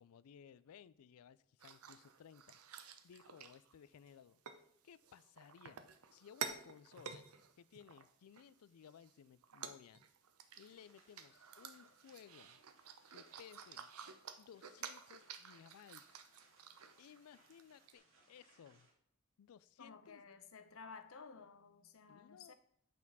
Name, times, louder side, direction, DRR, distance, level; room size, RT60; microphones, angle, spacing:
voice 1, 0.0-2.6 3.0-4.4 4.8-7.3 7.6-10.0 10.6-12.6 13.1-13.9 14.4-16.0 17.0-18.9 19.4-20.2 22.1-22.5, left 8 dB, 90° left, 18 dB, 0.4 m, -60 dB
sound 1, 1.6-4.1 4.5-4.6 5.0-8.4 8.9-9.1 9.4-17.2 17.5-17.6 17.9-18.0, right 7 dB, 90° right, 0.8 m, -51 dB
sound 2, 10.5-18.9, right 2 dB, 60° right, 2.3 m, -71 dB
voice 2, 19.8-22.5, left 5 dB, 70° left, 10 dB, 0.8 m, -55 dB
8.4 x 4.5 x 5.4 m, 0.69 s
head